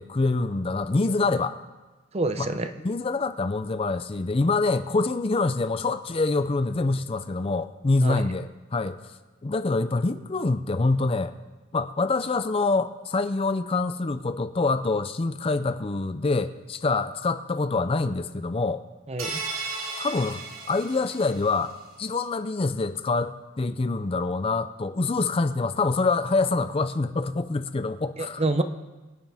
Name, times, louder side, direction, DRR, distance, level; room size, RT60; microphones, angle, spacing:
voice 1, 0.0-1.6 2.4-9.0 9.4-11.3 11.7-18.8 20.0-28.5, left 3 dB, 25° left, 11 dB, 0.5 m, -26 dB
voice 2, 2.1-2.7 8.0-8.2 19.1-19.4 28.2-28.6, right 2 dB, 30° right, 9 dB, 0.6 m, -27 dB
sound 1, 19.2-21.7, right 3 dB, 90° right, 2.7 m, -35 dB
25.0 x 9.6 x 3.5 m, 1.2 s
head